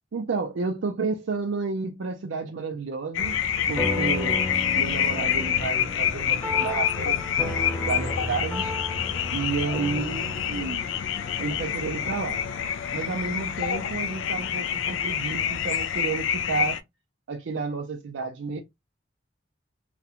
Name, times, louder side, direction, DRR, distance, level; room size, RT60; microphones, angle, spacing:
voice 1, 0.1-3.4 3.7-7.3 7.8-8.7 9.3-10.8 11.4-12.4 12.9-16.8 17.3-18.6, right 4 dB, 75° right, 0.4 m, -31 dB
sound 1, 3.1-16.8, left 9 dB, 80° left, 0.3 m, -27 dB
sound 2, 3.8-12.5, left 1 dB, 10° left, 0.5 m, -34 dB
2.4 x 2.2 x 2.8 m
head